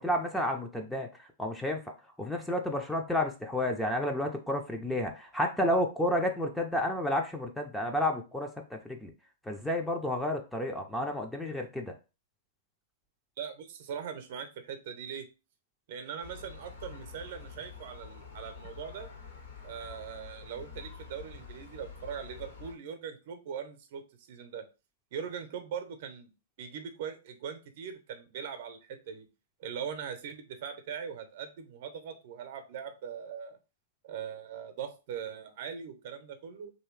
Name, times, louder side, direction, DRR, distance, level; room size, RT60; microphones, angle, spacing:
voice 1, 0.0-1.8 2.2-9.1 9.5-11.9, left 1 dB, 5° left, 2 dB, 0.5 m, -31 dB
voice 2, 13.4-15.3 15.9-19.1 19.6-24.0 24.3-24.6 25.1-26.3 26.6-29.3 29.6-33.6 34.0-36.7, right 7 dB, 55° right, 7 dB, 0.7 m, -41 dB
Gull seagull, 16.2-22.7, left 5 dB, 70° left, 1.4 m, -47 dB
3.0 x 2.8 x 3.1 m, 0.30 s
hypercardioid pair, 115°, 0 cm